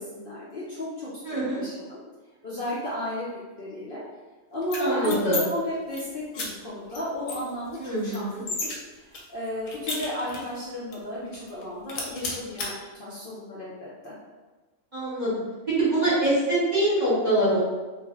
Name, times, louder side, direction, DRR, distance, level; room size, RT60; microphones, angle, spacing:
voice 1, 0.0-1.1 1.4-2.0 2.4-4.0 4.5-8.3 8.6-14.1, left 1 dB, 55° left, -9 dB, 0.7 m, -34 dB
voice 2, 1.2-1.6 4.8-5.4 7.8-8.4 14.9-15.3 15.8-17.6, right 1 dB, 35° right, -10 dB, 1.1 m, -24 dB
sound 1, 4.6-5.4 5.7-6.0 6.3-6.5 6.9-7.0 7.3-8.8 9.1-10.5 10.9-11.0 11.3-11.6 11.9-12.7, left 3 dB, 75° left, 1.0 m, -33 dB
2.4 x 2.0 x 3.4 m, 1.3 s
omnidirectional pair, 1.4 m